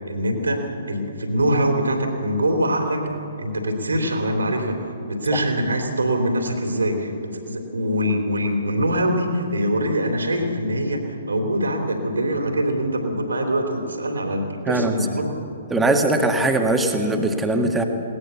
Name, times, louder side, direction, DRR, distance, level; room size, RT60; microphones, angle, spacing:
voice 1, 0.1-3.1 3.4-4.8 5.1-15.3, equal, 70° right, 4 dB, 3.2 m, -23 dB
voice 2, 14.7-15.0 15.7-17.8, right 2 dB, 5° right, 4 dB, 1.8 m, -20 dB
21.0 x 18.5 x 6.9 m, 2.9 s
figure-of-eight pair, 125°, 0 cm